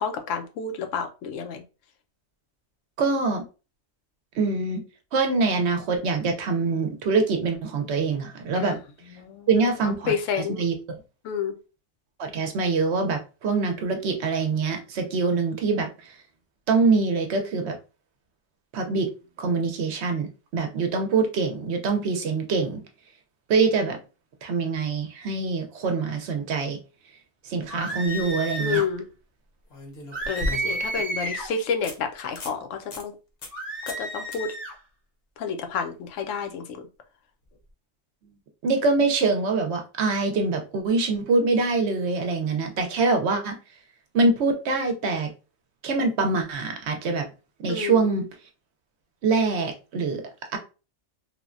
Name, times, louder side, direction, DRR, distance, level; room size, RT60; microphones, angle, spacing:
voice 1, 0.0-1.6 8.6-8.8 9.2-9.5 10.1-10.6 11.2-11.5 28.6-29.1 30.3-33.1 33.9-34.5 35.4-36.6 47.7-48.1, left 6 dB, 80° left, 6 dB, 1.0 m, -29 dB
voice 2, 3.0-3.4 4.4-4.8 5.1-8.8 9.5-10.7 12.2-16.2 16.7-17.7 18.7-19.1 19.4-22.8 23.5-24.0 24.4-26.8 27.4-28.8 38.6-43.6 44.1-45.3 45.8-47.2 47.6-48.2 49.2-50.2 50.5-50.6, right 4 dB, 65° right, 4 dB, 0.8 m, -24 dB
sound 1, 27.7-28.9 30.1-31.5 33.5-34.7, right 1 dB, 35° right, 0.9 m, -31 dB
sound 2, 28.2-28.3 29.7-31.0 31.4-31.5 31.8-32.0 32.3-32.6 32.9-33.0 33.4-33.6 33.9-34.1 34.3-34.4 37.5-37.6, left 1 dB, 55° left, 0.9 m, -34 dB
3.3 x 2.1 x 2.4 m, 0.31 s
omnidirectional pair, 1.3 m